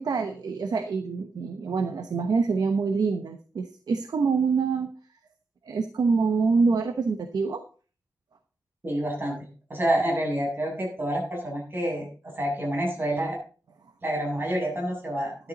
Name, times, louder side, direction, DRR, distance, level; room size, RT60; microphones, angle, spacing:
voice 1, 0.0-4.9 5.6-7.6, right 4 dB, 85° right, 8 dB, 1.0 m, -25 dB
voice 2, 8.8-9.4 9.7-12.1 12.3-13.4 14.0-15.5, right 1 dB, 35° right, -1 dB, 7.2 m, -28 dB
13.0 x 11.0 x 4.1 m, 0.39 s
wide cardioid pair, 150°, 7 cm